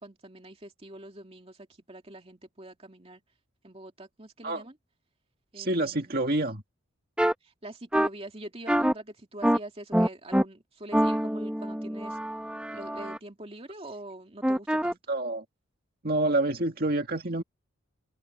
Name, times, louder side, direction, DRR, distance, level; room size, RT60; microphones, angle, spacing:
voice 1, 0.0-3.2 3.6-4.7 5.5-6.2 7.4-12.2 12.7-15.0, right 1 dB, 30° right, 2.6 m, -44 dB
voice 2, 5.6-6.6 15.1-15.4 16.0-17.4, right 2 dB, 45° right, 2.1 m, -27 dB
sound 1, 7.2-7.3 7.9-8.1 8.7-8.9 9.4-9.6 9.9-10.4 10.9-13.2 14.4-14.9, equal, 5° right, 1.0 m, -25 dB
head